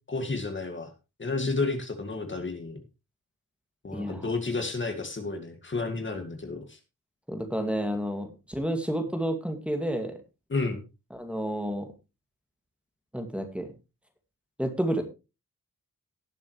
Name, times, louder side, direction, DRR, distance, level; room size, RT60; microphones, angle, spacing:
voice 1, 0.1-0.9 1.2-2.8 3.8-6.8 10.5-10.8, left 3 dB, 35° left, 6 dB, 2.1 m, -31 dB
voice 2, 3.9-4.3 7.3-10.2 11.1-11.9 13.1-13.7 14.6-15.0, right 1 dB, 5° right, 4 dB, 2.2 m, -30 dB
18.5 x 7.3 x 3.1 m, 0.28 s
wide cardioid pair, 105°, 32 cm